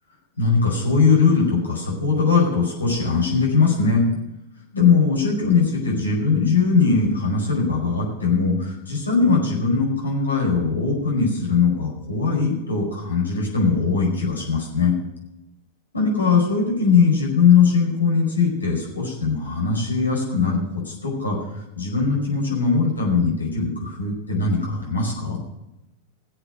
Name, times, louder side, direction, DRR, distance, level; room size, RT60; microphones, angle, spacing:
voice 1, 0.4-4.0 4.7-14.9 15.9-20.6 20.8-25.4, left 5 dB, 80° left, -2 dB, 4.9 m, -20 dB
17.0 x 8.1 x 6.3 m, 0.91 s
figure-of-eight pair, 90°, 0 cm